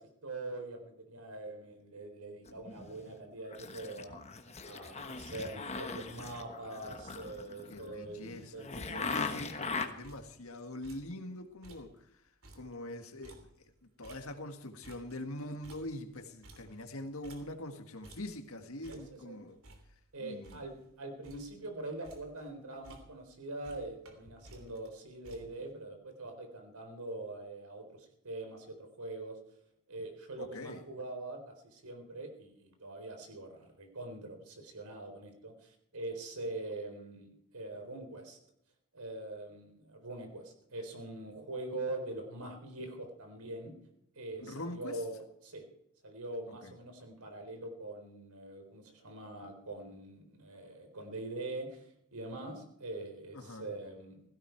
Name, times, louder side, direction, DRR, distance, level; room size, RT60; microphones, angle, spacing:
voice 1, 0.0-4.2 4.6-9.3 18.9-19.4 20.1-29.4 29.9-38.4 38.9-43.7 44.2-45.6 46.0-54.2, right 2 dB, 85° right, 4.1 m, -43 dB
sound 1, 2.5-3.2 3.5-9.9, left 4 dB, 30° left, 1.1 m, -40 dB
voice 2, 7.7-11.9 12.6-13.5 14.0-19.6 20.2-20.6 30.4-30.8 44.4-45.0 46.6-46.7 53.3-53.7, left 1 dB, 70° left, 1.8 m, -43 dB
sound 2, 10.0-10.5 10.8-11.2 11.5-12.0 12.3-14.6 14.8-17.8 18.0-18.5 18.8-19.3 19.6-20.9 21.2-21.6 21.9-22.5 22.8-23.4 23.6-25.7, right 2 dB, 70° right, 3.2 m, -56 dB
16.5 x 16.0 x 4.6 m
head